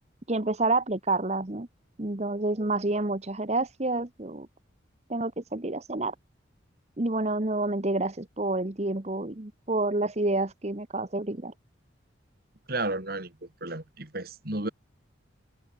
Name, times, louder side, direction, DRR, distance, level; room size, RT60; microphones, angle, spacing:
voice 1, 0.3-1.7 2.0-4.5 5.1-6.1 7.0-11.5, right 2 dB, 35° right, 1.1 m, -28 dB
voice 2, 12.7-13.3 13.6-14.7, right 2 dB, 50° right, 3.0 m, -32 dB
head